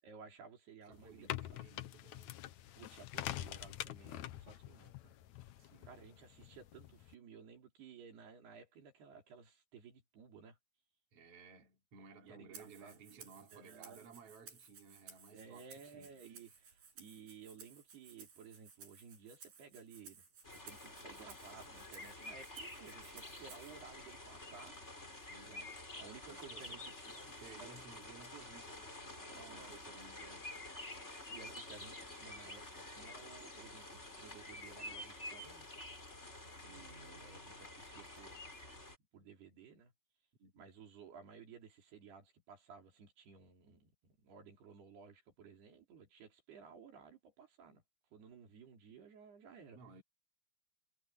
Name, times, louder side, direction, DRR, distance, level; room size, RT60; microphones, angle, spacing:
voice 1, 0.0-1.6 2.8-5.1 5.8-10.6 12.2-13.0 13.5-14.2 15.3-25.1 25.5-25.7 26.0-27.3 27.6-27.9 29.2-30.3 31.3-35.7 36.6-38.4 39.1-39.9 40.6-47.8 48.1-49.8, right 6 dB, 80° right, 6.2 m, -56 dB
sound 1, 0.9-7.1, left 13 dB, 85° left, 1.6 m, -46 dB
voice 2, 0.9-2.5 5.6-5.9 11.1-16.2 25.1-25.7 26.3-26.8 27.1-30.5 40.4-40.7 49.7-50.0, right 5 dB, 40° right, 4.1 m, -58 dB
Rattle (instrument), 12.5-23.8, right 6 dB, 60° right, 6.9 m, -58 dB
sound 2, 20.4-39.0, left 2 dB, 15° left, 5.0 m, -49 dB
omnidirectional pair, 4.5 m